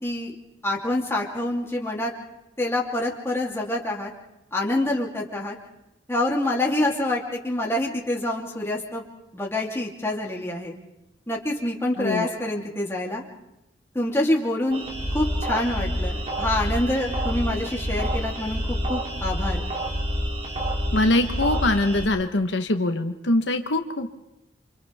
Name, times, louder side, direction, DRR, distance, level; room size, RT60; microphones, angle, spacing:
voice 1, 0.0-0.3 0.6-2.1 2.6-4.1 4.5-5.6 6.1-9.0 9.3-10.7 11.3-13.2 13.9-14.8 15.1-19.6, left 1 dB, 15° left, -2 dB, 3.1 m, -26 dB
sound 1, 14.7-22.1, equal, 35° right, 2.9 m, -28 dB
voice 2, 20.9-24.1, left 2 dB, 80° left, 6 dB, 1.2 m, -23 dB
28.5 x 27.0 x 3.6 m, 0.90 s
head